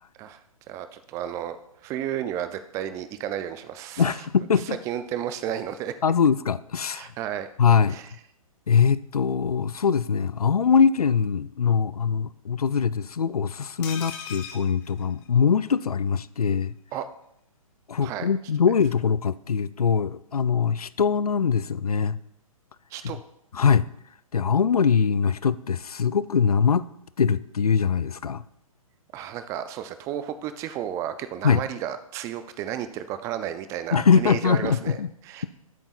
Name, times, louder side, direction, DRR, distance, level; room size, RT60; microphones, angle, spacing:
voice 1, 0.7-1.6 1.8-4.0 4.9-5.9 6.9-7.5 7.9-8.1 16.9-17.0 18.0-18.3 22.9-23.2 29.1-35.0 35.3-35.5, right 10 dB, 15° right, 11 dB, 0.4 m, -32 dB
voice 2, 4.0-4.8 6.0-7.1 7.6-8.0 8.7-16.7 17.9-22.2 23.5-23.9 24.3-26.9 27.2-28.4 31.4-31.6 33.9-35.1, left 6 dB, 90° left, 18 dB, 0.4 m, -22 dB
sound 1, 13.8-15.8 16.1-16.2 16.4-16.6, left 7 dB, 30° left, 1.0 m, -39 dB
10.5 x 8.3 x 2.4 m, 0.76 s
figure-of-eight pair, 130°, 19 cm